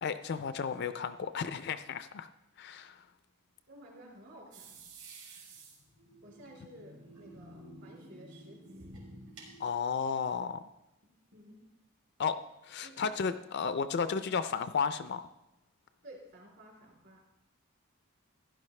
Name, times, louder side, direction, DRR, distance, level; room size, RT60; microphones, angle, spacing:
voice 1, 0.0-2.3 2.6-3.0 9.6-10.7 12.2-12.4 12.6-15.3, left 6 dB, 50° left, 12 dB, 0.4 m, -33 dB
voice 2, 3.7-4.8 6.2-8.9 11.3-11.6 12.8-13.3 16.0-17.2, right 1 dB, 55° right, -1 dB, 3.4 m, -54 dB
sound 1, 4.5-9.6, right 2 dB, 80° right, 3.5 m, -51 dB
15.0 x 11.0 x 3.2 m, 0.93 s
head